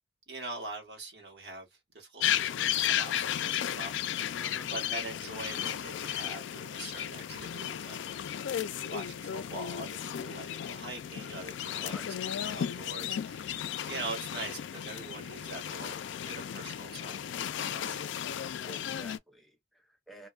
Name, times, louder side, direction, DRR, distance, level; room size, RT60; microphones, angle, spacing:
voice 1, 0.3-1.7 1.9-4.4 4.7-8.0 8.7-16.0 16.2-18.0, right 2 dB, 65° right, 1.4 m, -43 dB
sound 1, 2.2-19.2, left 10 dB, 85° left, 0.3 m, -34 dB
voice 2, 4.4-4.7 11.9-12.1 18.6-20.3, equal, ahead, 0.5 m, -50 dB
2.6 x 2.2 x 2.3 m
head